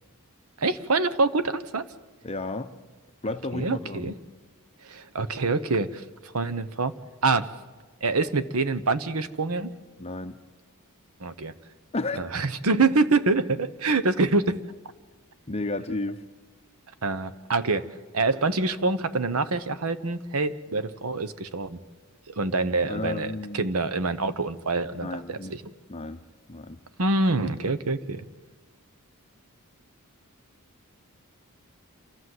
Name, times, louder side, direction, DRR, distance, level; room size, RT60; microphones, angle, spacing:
voice 1, 0.6-1.9 3.5-4.1 4.8-6.9 7.2-7.5 8.0-9.7 11.2-11.5 12.2-14.6 17.0-17.8 18.1-21.8 22.3-25.6 27.0-28.3, right 3 dB, 70° right, 12 dB, 1.0 m, -26 dB
voice 2, 2.2-2.7 3.2-4.2 10.0-10.4 11.9-12.3 15.5-16.2 22.9-23.7 25.0-25.6 25.9-26.2 26.5-26.8, left 2 dB, 30° left, 7 dB, 0.7 m, -32 dB
28.0 x 13.5 x 7.8 m, 1.3 s
head